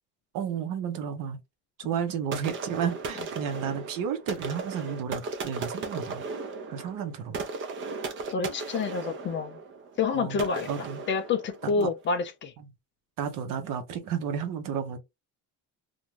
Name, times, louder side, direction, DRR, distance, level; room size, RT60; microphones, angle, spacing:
voice 1, 0.3-1.4 1.8-6.2 6.7-7.4 10.1-11.0 11.6-11.9 13.2-15.0, right 7 dB, 70° right, 0.8 m, -32 dB
sound 1, 2.3-12.0, right 4 dB, 35° right, 0.5 m, -37 dB
voice 2, 8.3-9.6 10.0-12.5, left 4 dB, 35° left, 0.4 m, -28 dB
2.5 x 2.2 x 3.0 m
cardioid pair, 160°, 34 cm